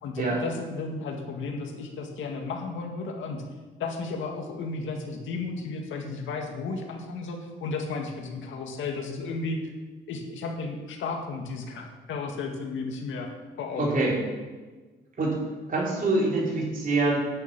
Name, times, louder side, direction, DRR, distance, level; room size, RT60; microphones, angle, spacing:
voice 1, 0.0-3.4 3.8-9.6 10.1-13.3 13.6-14.0, left 4 dB, 75° left, 3 dB, 1.9 m, -33 dB
voice 2, 13.8-14.2 15.2-15.4 15.7-17.3, right 2 dB, 45° right, -3 dB, 4.3 m, -25 dB
9.8 x 6.8 x 8.5 m, 1.3 s
cardioid pair, 90°, 20 cm